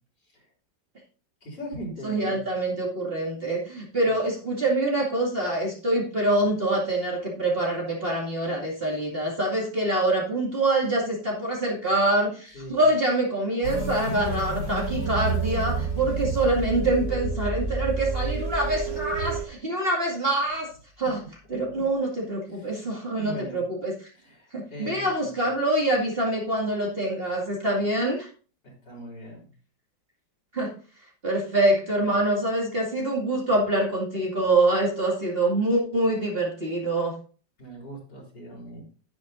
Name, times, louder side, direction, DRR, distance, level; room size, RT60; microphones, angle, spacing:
voice 1, 1.4-2.4 12.5-12.8 21.7-21.8 22.5-22.8 23.2-23.6 24.1-25.5 28.6-29.5 37.6-38.8, right 1 dB, 60° left, -3 dB, 4.5 m, -40 dB
voice 2, 2.0-20.7 21.0-21.2 21.5-23.9 24.5-28.3 30.5-30.7 31.2-37.1, right 1 dB, 30° right, -3 dB, 2.4 m, -25 dB
sound 1, 13.6-19.4, right 3 dB, 50° right, 3.4 m, -29 dB
11.0 x 10.0 x 2.6 m, 0.38 s
omnidirectional pair, 2.1 m